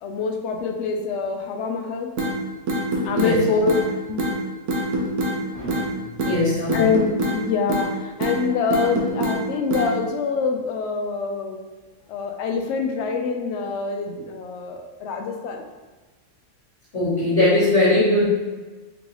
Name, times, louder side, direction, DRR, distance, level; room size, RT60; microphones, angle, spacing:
voice 1, 0.0-2.1 3.0-3.8 4.1-4.4 5.4-5.5 6.7-11.6 12.1-15.6, left 4 dB, 65° left, 4 dB, 0.7 m, -25 dB
sound 1, 2.2-2.3 2.7-3.3 3.7-3.8 4.2-4.3 4.7-5.4 5.7-5.9 6.2-6.4 6.7-7.4 7.7-7.9 8.2-8.4 8.7-9.4 9.7-9.9, right 1 dB, 65° right, 1.1 m, -24 dB
voice 2, 5.5-5.9 6.2-6.9 16.9-18.3, left 2 dB, 45° left, -10 dB, 1.4 m, -20 dB
3.8 x 3.8 x 2.9 m, 1.2 s
omnidirectional pair, 1.6 m